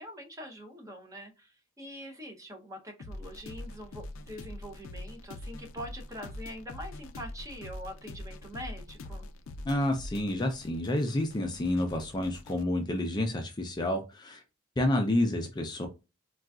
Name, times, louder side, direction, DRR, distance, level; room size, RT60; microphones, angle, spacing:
voice 1, 0.0-9.3, equal, 15° right, 4 dB, 0.6 m, -44 dB
sound 1, 3.0-12.6, left 1 dB, 85° left, 0.4 m, -44 dB
voice 2, 9.7-14.4 14.8-15.9, left 1 dB, 20° left, 4 dB, 0.4 m, -29 dB
3.8 x 2.3 x 2.3 m, 0.27 s
head